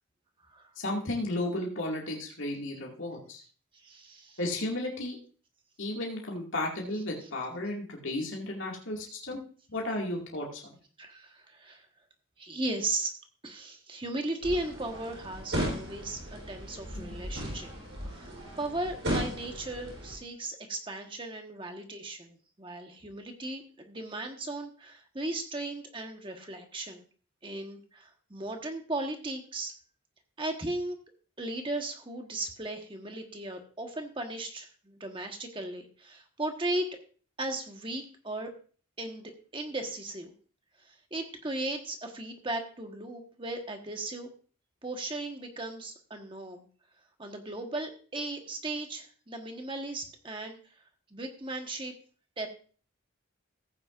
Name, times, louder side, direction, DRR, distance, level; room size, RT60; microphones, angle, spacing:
voice 1, 0.8-3.4 4.4-5.2 5.8-9.4 9.7-10.6 17.1-17.2, left 1 dB, 70° left, -2 dB, 2.1 m, -34 dB
voice 2, 3.8-4.4 11.0-11.9 12.4-13.1 13.4-17.7 18.1-27.0 27.4-29.8 30.4-31.0 31.4-36.9 37.4-38.5 39.0-40.3 40.8-44.3 44.8-46.7 47.2-50.6 51.1-51.9 52.4-52.5, right 2 dB, 25° right, 4 dB, 1.3 m, -36 dB
sound 1, 14.4-20.2, equal, 70° right, 3.7 m, -36 dB
15.5 x 8.8 x 2.5 m, 0.41 s
head